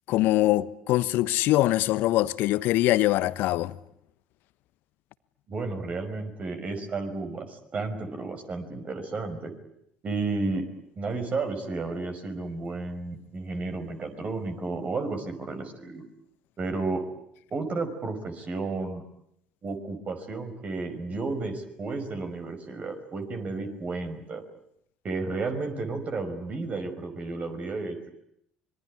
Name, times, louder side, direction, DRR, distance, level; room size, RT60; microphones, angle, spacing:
voice 1, 0.1-3.8, left 16 dB, 60° left, 1.1 m, -23 dB
voice 2, 5.5-9.5 10.0-10.7 11.0-16.0 16.6-17.0 17.5-19.0 19.6-24.4 25.0-28.1, right 3 dB, 35° right, 5.5 m, -32 dB
26.0 x 22.0 x 9.9 m
figure-of-eight pair, 60°, 4 cm